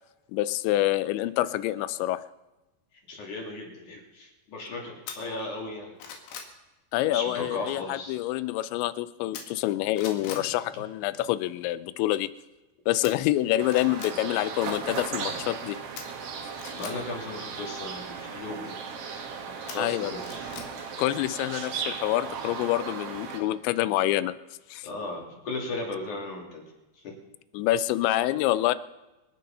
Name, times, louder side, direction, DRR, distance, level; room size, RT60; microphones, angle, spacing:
voice 1, 0.3-2.2 6.9-12.3 12.9-15.8 19.8-20.1 21.0-24.3 24.7-24.9 27.5-28.7, left 15 dB, 90° left, 15 dB, 3.0 m, -27 dB
voice 2, 3.1-5.9 7.0-8.2 10.3-10.4 14.0-14.1 16.7-18.8 19.6-20.5 24.8-26.6 27.0-27.2, left 2 dB, 45° left, -1 dB, 4.1 m, -36 dB
sound 1, 5.1-5.2 5.7-6.5 9.3-9.7 10.0-10.5 13.0-13.1 13.6-14.1 16.0-16.9 19.7-20.7 21.1-21.2, left 7 dB, 75° left, 3.9 m, -41 dB
sound 2, 13.6-23.4, right 6 dB, 60° right, 3.1 m, -36 dB
27.5 x 9.4 x 5.5 m, 1.1 s
omnidirectional pair, 5.1 m